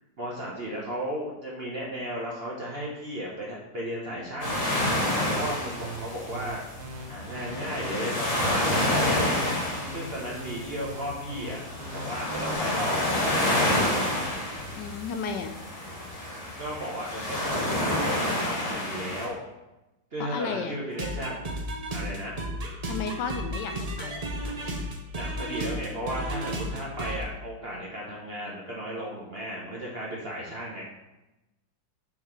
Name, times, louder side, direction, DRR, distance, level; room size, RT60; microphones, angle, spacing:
voice 1, 0.2-4.6 5.3-6.6 7.1-9.2 9.9-11.6 11.9-13.0 16.6-19.4 20.1-21.5 21.9-22.4 25.1-30.8, equal, 40° right, -4 dB, 0.9 m, -35 dB
sound 1, 4.4-19.3, left 1 dB, 20° left, 1.3 m, -29 dB
sound 2, 4.8-12.5, right 3 dB, 90° right, 1.5 m, -40 dB
voice 2, 14.7-15.5 20.2-20.8 22.8-24.2, left 5 dB, 75° left, 6 dB, 1.1 m, -33 dB
sound 3, 20.9-27.2, right 1 dB, 70° right, 0.3 m, -33 dB
5.7 x 4.2 x 4.5 m, 0.98 s
omnidirectional pair, 2.0 m